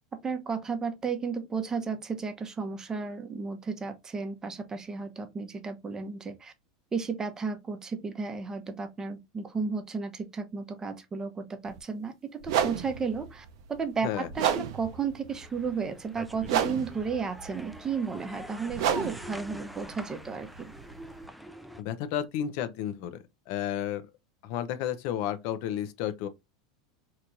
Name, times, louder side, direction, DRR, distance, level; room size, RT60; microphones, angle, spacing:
voice 1, 0.1-6.5 6.9-20.7, right 5 dB, 20° right, 0.8 m, -33 dB
sound 1, 11.7-11.8 12.4-21.3, right 9 dB, 65° right, 0.6 m, -33 dB
sound 2, 15.3-21.8, equal, ahead, 0.4 m, -45 dB
voice 2, 21.8-24.0 24.4-26.3, left 10 dB, 60° left, 0.6 m, -32 dB
4.2 x 3.0 x 2.5 m
hypercardioid pair, 95°, 3 cm